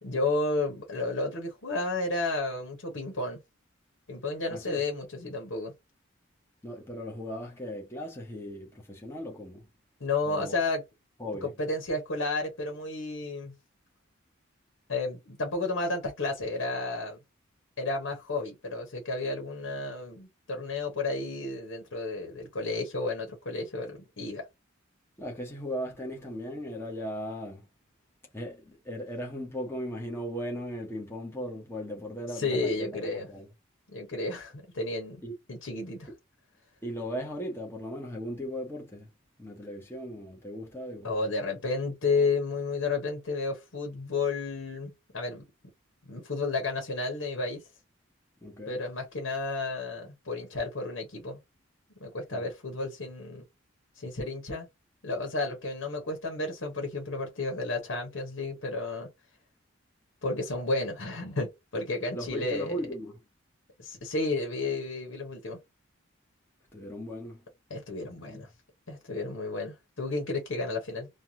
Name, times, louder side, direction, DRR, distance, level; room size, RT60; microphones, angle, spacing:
voice 1, 0.0-3.4 4.1-5.7 10.0-10.8 11.4-13.5 14.9-17.2 17.8-24.5 32.3-33.3 33.9-35.2 35.5-36.1 41.0-45.4 46.1-47.6 48.7-51.4 52.0-53.4 54.0-54.7 55.0-59.1 60.2-62.8 63.8-65.6 67.7-68.5 68.9-71.1, left 3 dB, 90° left, 1.1 m, -32 dB
voice 2, 4.5-4.8 6.6-9.7 10.2-10.5 11.2-11.5 25.2-27.7 28.3-33.5 35.2-35.3 36.8-39.1 39.4-41.1 48.4-48.8 52.3-52.5 62.0-63.2 66.7-67.5 68.3-68.4, equal, 10° left, 0.8 m, -37 dB
3.3 x 2.3 x 2.8 m
head